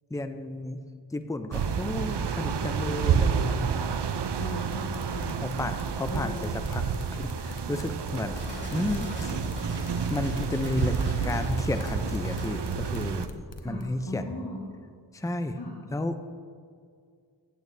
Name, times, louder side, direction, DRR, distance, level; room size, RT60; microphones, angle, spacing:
voice 1, 0.1-0.8 1.1-3.9 5.4-6.8 7.1-8.4 8.7-9.3 10.1-10.9 11.2-13.3 13.6-14.5 15.1-15.6 15.9-16.2, left 2 dB, 10° left, 9 dB, 0.5 m, -32 dB
sound 1, 1.5-13.3, right 6 dB, 65° right, 0.6 m, -30 dB
voice 2, 4.2-5.3 6.1-6.4 8.5-8.6 10.9-11.3 13.6-14.6 15.5-15.7, left 1 dB, 60° left, -4 dB, 1.7 m, -38 dB
sound 2, 4.7-13.8, left 4 dB, 85° left, 0.9 m, -43 dB
sound 3, 8.3-12.6, equal, 25° right, 2.6 m, -38 dB
14.5 x 8.5 x 2.7 m, 2.1 s
wide cardioid pair, 45°, 44 cm